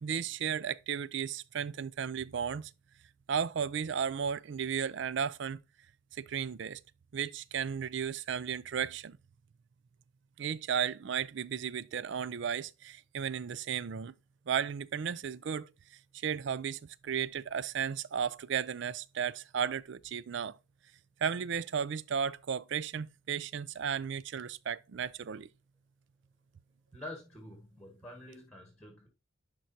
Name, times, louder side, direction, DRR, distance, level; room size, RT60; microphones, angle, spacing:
voice 1, 0.0-2.7 3.3-5.6 6.1-6.8 7.1-9.2 10.4-14.1 14.5-15.7 16.1-20.6 21.2-25.5, right 7 dB, 60° right, 0.4 m, -34 dB
voice 2, 26.9-29.1, left 1 dB, 5° left, 1.4 m, -47 dB
11.0 x 4.5 x 2.7 m
head